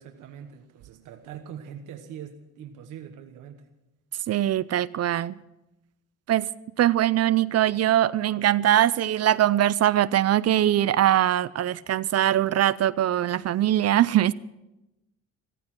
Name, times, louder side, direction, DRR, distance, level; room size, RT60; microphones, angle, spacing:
voice 1, 0.0-3.7, right 8 dB, 85° right, 1.3 m, -42 dB
voice 2, 4.3-5.3 6.3-6.5 6.8-14.3, right 12 dB, 55° right, 0.5 m, -22 dB
15.0 x 14.5 x 6.1 m
cardioid pair, 90°, 30 cm